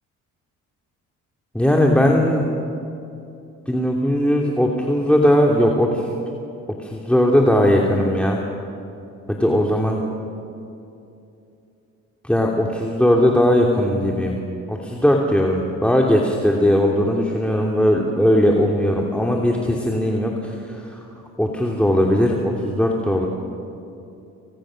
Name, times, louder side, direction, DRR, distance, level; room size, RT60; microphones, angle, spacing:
voice 1, 1.5-2.5 3.7-6.0 6.8-8.4 9.3-10.0 12.2-14.3 14.7-21.0 21.4-23.3, equal, 5° left, -1 dB, 2.7 m, -18 dB
28.0 x 26.0 x 6.4 m, 2.7 s
cardioid pair, 90°, 30 cm